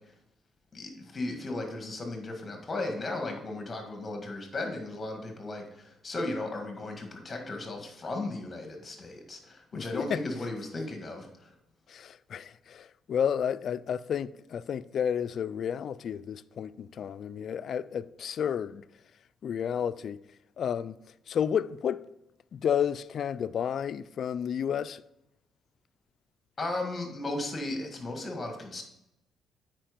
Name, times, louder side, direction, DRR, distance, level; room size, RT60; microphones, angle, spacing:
voice 1, 0.7-11.5 26.6-28.8, left 2 dB, 30° left, 1.7 m, -36 dB
voice 2, 9.7-10.2 11.9-18.8 19.4-20.2 20.6-21.0 21.3-22.0 22.5-25.0, left 8 dB, 60° left, 0.3 m, -31 dB
8.9 x 4.9 x 5.1 m
cardioid pair, 90°, 0 cm